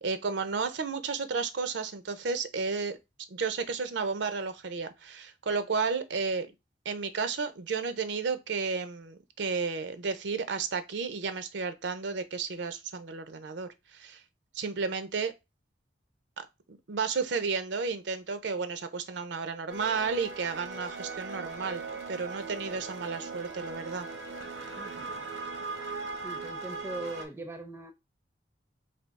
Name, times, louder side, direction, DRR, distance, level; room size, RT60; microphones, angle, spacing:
voice 1, 0.0-3.0 3.3-6.5 6.9-14.2 14.5-15.3 16.4-21.8 22.1-24.1, right 5 dB, 70° right, 0.5 m, -32 dB
sound 1, 19.7-27.2, right 3 dB, 90° right, 0.9 m, -39 dB
voice 2, 24.8-25.1 26.1-27.9, right 2 dB, 15° right, 0.5 m, -41 dB
3.4 x 2.7 x 4.0 m
head